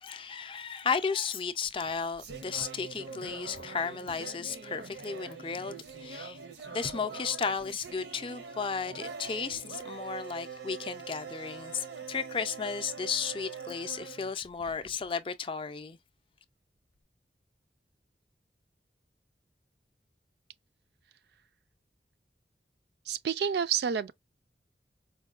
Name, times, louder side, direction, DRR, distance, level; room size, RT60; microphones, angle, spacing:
voice 1, 0.0-6.4 6.7-16.0, left 5 dB, 30° left, 0.4 m, -34 dB
sound 1, 1.6-15.1, right 5 dB, 90° right, 0.7 m, -44 dB
voice 2, 23.1-24.1, right 7 dB, 70° right, 0.3 m, -29 dB
4.6 x 2.1 x 2.3 m
head